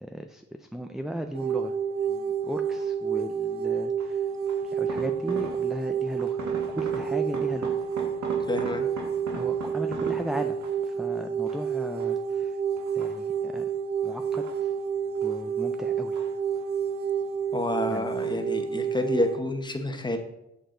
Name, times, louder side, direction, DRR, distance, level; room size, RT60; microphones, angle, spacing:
voice 1, 0.0-1.8 2.1-4.3 4.6-6.4 6.7-7.8 9.3-10.6 10.8-12.6 12.9-13.7 14.0-14.7 15.2-16.2 17.9-18.1, right 1 dB, ahead, 7 dB, 0.4 m, -36 dB
sound 1, 1.3-19.4, right 7 dB, 45° right, 0.9 m, -29 dB
sound 2, 2.7-3.1 4.0-5.9 6.2-11.0 11.5-12.3 12.8-13.6 14.1-15.4 15.7-16.9 17.1-17.8 18.2-18.5 18.8-18.9, right 5 dB, 70° right, 1.4 m, -40 dB
voice 2, 8.5-8.9 17.5-20.2, left 1 dB, 15° left, 5 dB, 1.0 m, -28 dB
7.8 x 6.7 x 3.8 m, 0.87 s
cardioid pair, 105°, 29 cm